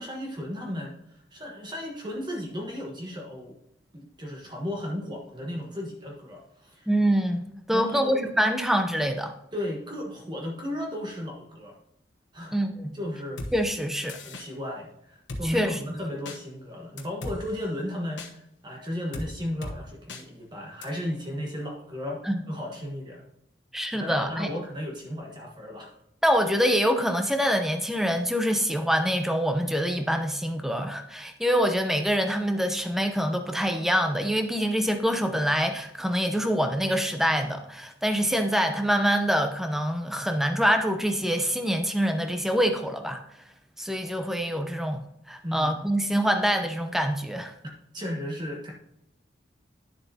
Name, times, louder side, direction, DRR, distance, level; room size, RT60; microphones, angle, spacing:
voice 1, 0.0-3.6 3.9-6.9 7.7-8.2 9.5-11.7 12.3-12.5 12.9-13.4 14.2-23.2 23.9-25.9 45.4-45.8 47.9-48.7, left 1 dB, 25° right, -1 dB, 1.3 m, -35 dB
voice 2, 6.9-9.3 12.5-13.0 13.5-14.2 15.4-15.7 22.2-22.4 23.7-24.5 26.2-43.2 43.8-47.5, equal, ahead, 6 dB, 0.6 m, -25 dB
Drum kit, 13.4-13.5 14.1-14.5 15.3-15.4 16.3-16.4 17.0-17.4 18.2-18.3 19.1-19.3 19.6-19.8 20.1-20.2 20.8-20.9, left 2 dB, 85° left, 1.1 m, -36 dB
10.5 x 7.3 x 2.8 m, 0.79 s
head